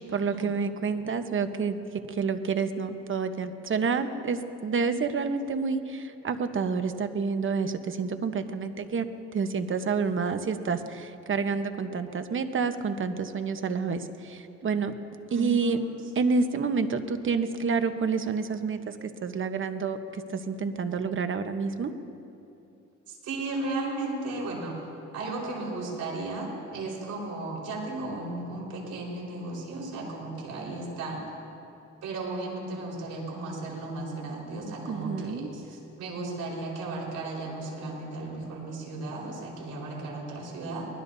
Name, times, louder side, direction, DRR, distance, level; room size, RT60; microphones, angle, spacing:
voice 1, 0.1-1.8 2.1-9.1 9.3-14.9 15.3-15.8 16.2-21.9 34.9-35.5, right 5 dB, 40° right, 9 dB, 1.1 m, -29 dB
voice 2, 15.3-15.8 23.1-24.8 25.1-31.2 32.0-40.9, right 2 dB, 85° right, -2 dB, 4.6 m, -35 dB
24.0 x 20.0 x 2.7 m, 2.7 s
cardioid pair, 90°, 30 cm